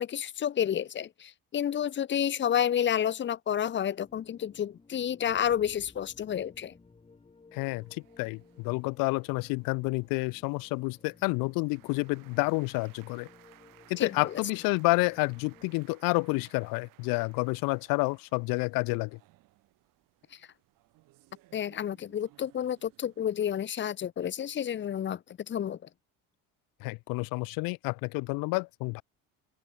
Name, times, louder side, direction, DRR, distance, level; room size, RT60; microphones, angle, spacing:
voice 1, 0.0-6.7 14.0-14.3 21.5-25.2 25.5-25.8, left 9 dB, 35° left, 1.0 m, -30 dB
sound 1, 4.0-15.8, left 4 dB, 15° left, 4.6 m, -58 dB
voice 2, 7.5-13.3 13.9-19.2 26.8-29.0, left 27 dB, 90° left, 0.9 m, -29 dB
sound 2, 7.6-23.8, right 19 dB, 75° right, 7.4 m, -62 dB
open air
cardioid pair, 140°, 33 cm